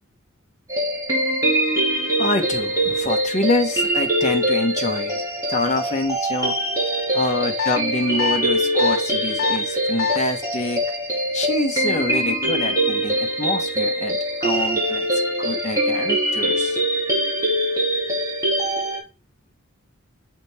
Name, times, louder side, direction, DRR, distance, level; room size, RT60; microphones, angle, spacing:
sound 1, 0.7-19.0, right 1 dB, 15° right, 2.2 m, -23 dB
voice 1, 2.2-5.2 5.5-6.5 7.1-10.8 11.3-16.8, left 2 dB, 30° left, 3 dB, 1.2 m, -26 dB
sound 2, 7.6-7.8 8.2-8.4 8.8-9.0 9.4-9.6 10.0-10.2, left 8 dB, 80° left, 1.0 m, -23 dB
6.7 x 4.2 x 3.4 m, 0.28 s
head